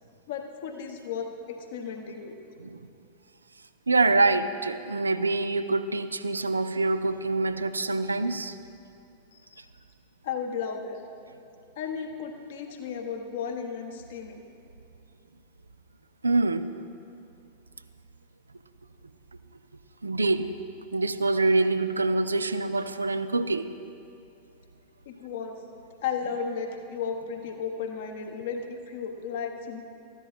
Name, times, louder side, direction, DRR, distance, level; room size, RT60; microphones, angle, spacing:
voice 1, 0.3-2.3 9.3-9.7 10.2-11.0 11.8-14.4 25.0-25.6 26.0-29.8, left 6 dB, 55° left, 4 dB, 1.2 m, -34 dB
voice 2, 3.9-8.6 16.2-16.7 20.0-20.5 20.9-23.7, right 3 dB, 80° right, 12 dB, 0.4 m, -25 dB
13.5 x 10.5 x 4.2 m, 2.5 s
figure-of-eight pair, 90°, 0 cm